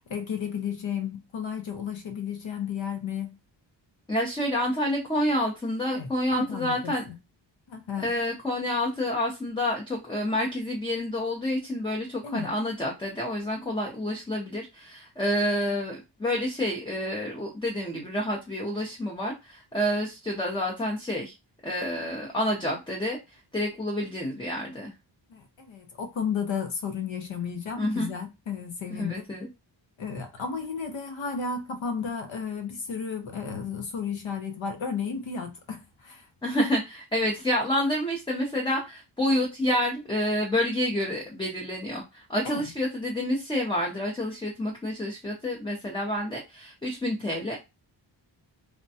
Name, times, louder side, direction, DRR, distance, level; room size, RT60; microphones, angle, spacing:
voice 1, 0.1-3.4 5.9-7.1 7.7-8.1 12.2-12.5 25.3-29.3 30.0-36.2 42.4-42.6, left 6 dB, 75° left, 0.8 m, -33 dB
voice 2, 4.1-7.0 8.0-21.3 21.6-23.2 23.5-24.9 27.8-28.1 29.0-29.5 36.4-47.6, left 1 dB, 10° left, 0.5 m, -28 dB
3.4 x 2.2 x 2.7 m
wide cardioid pair, 145°, 46 cm